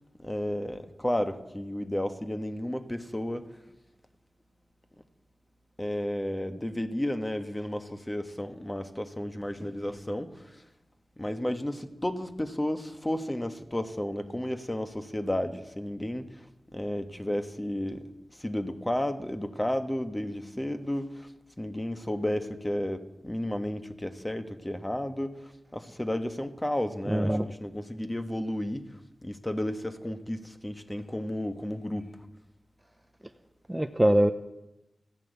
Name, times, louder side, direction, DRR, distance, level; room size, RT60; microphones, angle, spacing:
voice 1, 0.2-3.6 5.8-10.6 11.2-21.3 21.6-32.1, left 1 dB, 15° left, 1.4 m, -33 dB
voice 2, 27.1-27.5 33.7-34.3, right 1 dB, 15° right, 0.7 m, -23 dB
15.0 x 10.5 x 8.2 m
cardioid pair, 60°, 0 cm